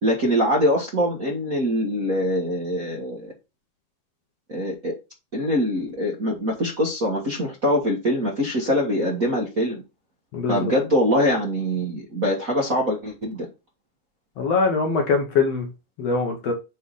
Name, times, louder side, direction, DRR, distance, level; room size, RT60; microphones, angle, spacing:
voice 1, 0.0-3.3 4.5-4.9 5.3-9.8 10.5-13.5, equal, 40° right, 1.2 m, -23 dB
voice 2, 10.3-10.7 14.4-15.7 16.0-16.5, left 4 dB, 60° left, 1.9 m, -22 dB
9.3 x 3.4 x 4.1 m
omnidirectional pair, 3.8 m